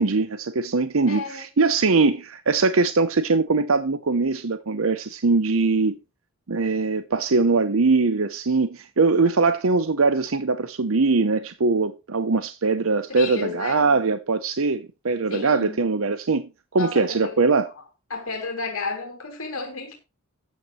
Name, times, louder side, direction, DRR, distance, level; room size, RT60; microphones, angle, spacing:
voice 1, 0.0-6.0 6.5-17.7, right 4 dB, 70° right, 0.8 m, -22 dB
voice 2, 1.1-1.4 9.3-9.4 13.1-13.8 15.3-15.8 16.8-17.4 17.6-17.7 18.1-19.9, left 4 dB, 70° left, 3.0 m, -32 dB
13.0 x 9.2 x 3.1 m
head